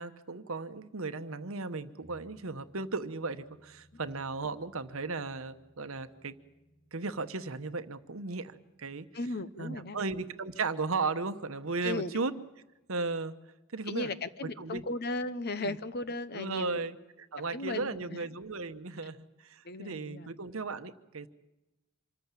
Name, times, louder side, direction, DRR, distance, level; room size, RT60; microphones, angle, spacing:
voice 1, 0.0-6.4 6.9-9.1 9.6-12.3 12.9-13.4 13.7-14.1 14.6-14.8 15.6-15.8 16.3-21.3, right 3 dB, 70° right, 11 dB, 1.0 m, -36 dB
sound 1, 2.0-11.1 11.4-11.5, equal, 30° left, 3.4 m, -63 dB
voice 2, 9.1-10.0 11.8-12.2 13.9-16.8 17.5-18.2 19.6-20.3, left 2 dB, 45° left, 13 dB, 0.9 m, -36 dB
26.5 x 14.0 x 9.0 m, 1.0 s
head